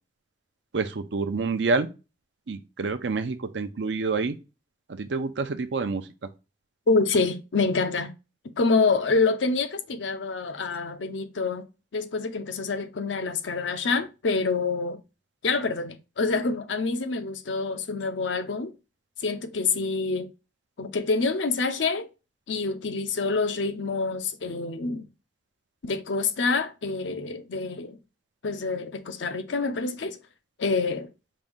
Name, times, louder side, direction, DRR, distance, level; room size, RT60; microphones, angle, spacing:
voice 1, 0.7-1.9 2.5-4.3 4.9-6.0, right 4 dB, 70° right, 0.6 m, -27 dB
voice 2, 6.9-8.1 8.6-11.7 11.9-15.0 15.4-18.7 19.2-20.3 20.8-22.1 22.5-25.1 25.8-28.0 28.4-30.2 30.6-31.1, left 4 dB, 80° left, 0.6 m, -26 dB
5.2 x 2.6 x 3.6 m
head